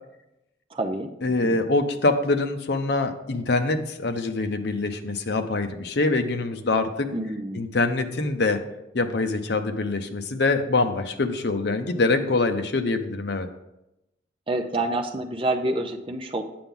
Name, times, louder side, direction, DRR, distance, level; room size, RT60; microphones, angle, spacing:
voice 1, 0.7-1.6 7.1-7.6 14.5-16.4, right 2 dB, 30° right, 5 dB, 0.6 m, -28 dB
voice 2, 1.2-7.1 7.5-8.6 8.9-13.5, left 3 dB, 65° left, 7 dB, 0.7 m, -24 dB
8.6 x 6.9 x 3.8 m, 0.90 s
head